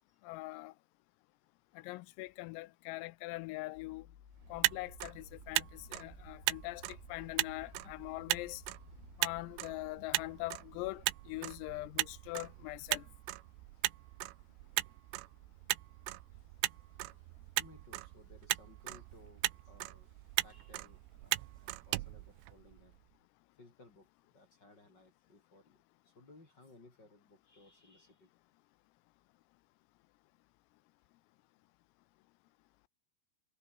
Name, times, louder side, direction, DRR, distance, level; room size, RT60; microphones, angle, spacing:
voice 1, 0.2-0.7 1.8-4.1 4.5-8.6 9.2-13.1, left 21 dB, 85° left, 3.5 m, -42 dB
sound 1, 3.7-9.5, left 10 dB, 70° left, 5.0 m, -58 dB
Motor vehicle (road), 4.4-23.0, right 20 dB, 85° right, 3.2 m, -38 dB
voice 2, 8.8-9.2 13.7-14.0 16.3-20.2 20.4-23.0 23.5-28.3 31.0-31.1, left 2 dB, 25° left, 3.9 m, -62 dB
omnidirectional pair, 6.0 m